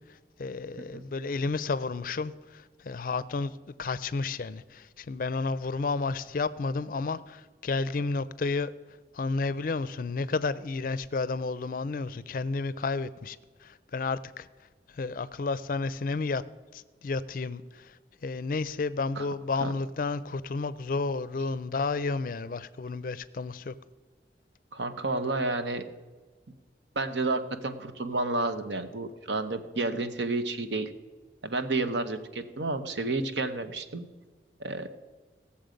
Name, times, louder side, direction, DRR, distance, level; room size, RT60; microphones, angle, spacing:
voice 1, 0.4-3.5 3.8-8.7 9.1-14.5 14.9-16.4 16.7-18.0 18.2-23.7, left 3 dB, 50° left, 16 dB, 0.4 m, -31 dB
voice 2, 24.7-25.8 26.9-30.9 31.4-34.0 34.6-34.9, right 2 dB, 80° right, 8 dB, 1.0 m, -30 dB
18.0 x 7.2 x 5.1 m, 1.4 s
head